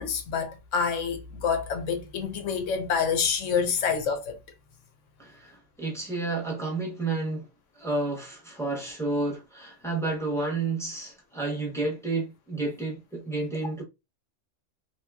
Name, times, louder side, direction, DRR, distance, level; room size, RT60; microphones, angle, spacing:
voice 1, 0.0-4.4, left 6 dB, 75° left, 1.0 m, -27 dB
voice 2, 5.2-7.5 7.8-13.8, right 3 dB, 5° left, 0.6 m, -31 dB
2.9 x 2.3 x 2.2 m
omnidirectional pair, 1.3 m